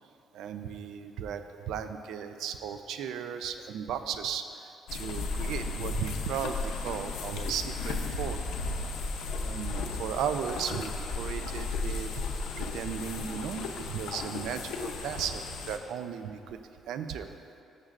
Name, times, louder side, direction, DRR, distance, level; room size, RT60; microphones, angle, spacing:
voice 1, 0.3-8.4 9.4-12.1 12.6-16.6 16.9-17.3, right 8 dB, 80° right, 8 dB, 0.4 m, -36 dB
sound 1, 4.9-15.8, left 3 dB, 85° left, 0.7 m, -35 dB
13.0 x 7.2 x 2.5 m, 2.8 s
cardioid pair, 145°, 0 cm